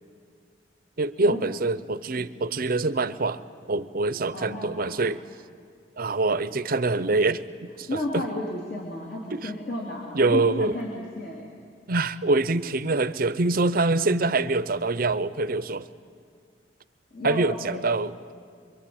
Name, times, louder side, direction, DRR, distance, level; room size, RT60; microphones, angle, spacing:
voice 1, 1.0-5.2 6.0-8.3 9.3-9.5 10.1-10.7 11.9-15.9 17.2-18.2, right 3 dB, 50° right, 14 dB, 0.7 m, -25 dB
voice 2, 4.3-5.0 7.9-11.4 17.1-17.8, left 1 dB, 55° left, -1 dB, 3.1 m, -33 dB
26.0 x 23.0 x 8.7 m, 2.2 s
head